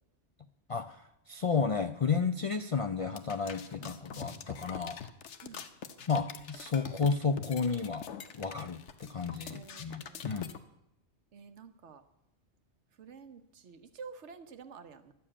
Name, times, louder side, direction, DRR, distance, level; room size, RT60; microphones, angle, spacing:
voice 1, 0.7-5.0 6.1-8.1 8.3-10.5, left 5 dB, 55° left, 9 dB, 0.3 m, -32 dB
sound 1, 3.0-10.6, left 7 dB, 90° left, 1.2 m, -44 dB
voice 2, 3.8-4.4 5.4-5.6 9.5-10.5 11.3-12.0 13.0-15.1, right 5 dB, 80° right, 10 dB, 1.2 m, -50 dB
12.5 x 7.0 x 8.6 m, 0.84 s
omnidirectional pair, 1.2 m